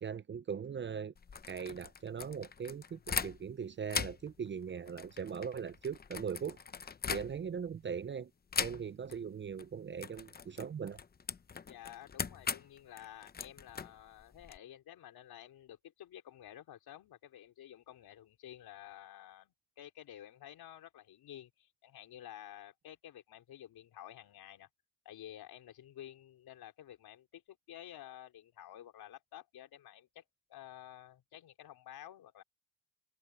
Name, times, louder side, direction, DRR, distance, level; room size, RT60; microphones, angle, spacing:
voice 1, 0.0-1.1 1.5-6.6 7.1-8.3 8.6-11.0, right 7 dB, 30° right, 0.5 m, -40 dB
sound 1, 1.2-3.6 3.9-7.7 8.5-9.2 9.4-9.7 10.0-14.6, left 6 dB, 25° left, 0.7 m, -40 dB
voice 2, 11.7-24.7 25.0-30.2 30.5-32.4, left 12 dB, 70° left, 4.0 m, -52 dB
cardioid pair, 100°, 39 cm